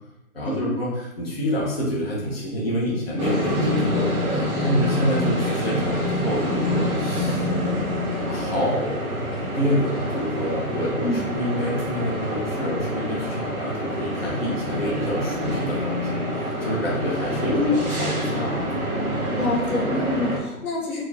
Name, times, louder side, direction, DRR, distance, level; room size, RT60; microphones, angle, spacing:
voice 1, 0.3-7.5 8.1-16.2 16.6-18.8, equal, 40° left, -5 dB, 1.3 m, -27 dB
sound 1, 3.2-20.4, equal, 20° right, 1.3 m, -26 dB
voice 2, 19.4-21.0, left 2 dB, 75° left, -2 dB, 1.5 m, -26 dB
4.8 x 3.0 x 3.6 m, 0.87 s
hypercardioid pair, 170°, 44 cm